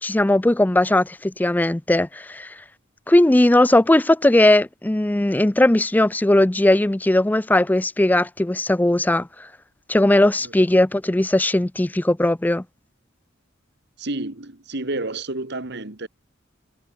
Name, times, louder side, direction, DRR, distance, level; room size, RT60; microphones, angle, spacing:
voice 1, 0.0-2.6 3.1-9.5 9.9-12.6, left 1 dB, 10° left, 0.4 m, -18 dB
voice 2, 14.0-16.1, right 2 dB, 60° right, 2.1 m, -30 dB
head